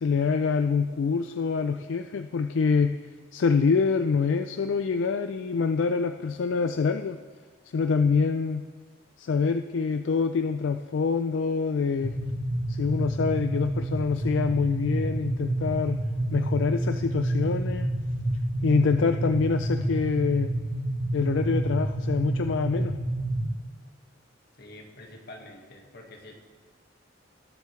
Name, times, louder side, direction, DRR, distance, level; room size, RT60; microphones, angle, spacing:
voice 1, 0.0-3.0 3.3-7.2 7.7-8.7 9.2-12.1 12.7-16.0 16.3-17.9 18.6-20.5 21.1-23.0, left 5 dB, 80° left, 8 dB, 0.4 m, -25 dB
sound 1, 12.0-23.5, right 1 dB, 5° right, 3.2 m, -29 dB
voice 2, 24.6-26.3, left 1 dB, 55° left, 2 dB, 1.7 m, -46 dB
19.0 x 8.2 x 3.2 m, 1.5 s
head